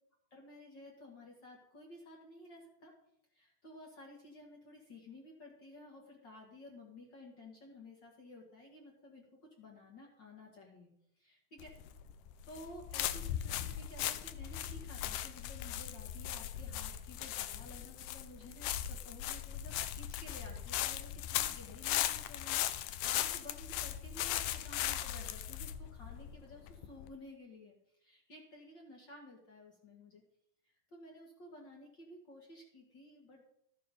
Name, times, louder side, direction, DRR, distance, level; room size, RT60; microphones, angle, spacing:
voice 1, 0.3-2.9 3.3-10.9 11.2-11.7 12.5-30.2 30.6-33.4, left 1 dB, 45° left, -1 dB, 1.6 m, -54 dB
sound 1, 11.6-27.1, left 12 dB, 85° left, 1.9 m, -38 dB
13.5 x 6.7 x 5.3 m, 0.75 s
omnidirectional pair, 4.2 m